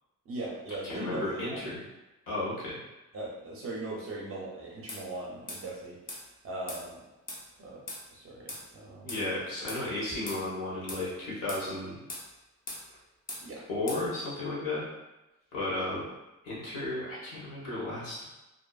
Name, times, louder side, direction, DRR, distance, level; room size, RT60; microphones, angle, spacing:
voice 1, 0.3-1.8 3.1-6.0 6.4-7.0 7.6-7.8 8.1-9.2 13.4-13.6 13.9-14.0, right 2 dB, 45° right, -4 dB, 0.5 m, -39 dB
voice 2, 0.8-1.8 2.3-2.8 9.0-12.0 13.7-14.8 15.5-16.0 16.4-18.2, left 2 dB, 85° left, -7 dB, 1.1 m, -34 dB
sound 1, 4.9-5.0 5.5-5.6 6.1-6.2 6.7-6.8 7.3-7.4 7.9-8.0 8.5-8.6 9.1-9.2 9.7-9.8 10.3-10.4 10.9-11.0 11.5-11.6 12.1-12.3 12.7-12.8 13.3-13.4 13.9-14.0, left 1 dB, 30° left, 0.4 m, -40 dB
2.6 x 2.4 x 2.3 m, 1.0 s
wide cardioid pair, 180°, 32 cm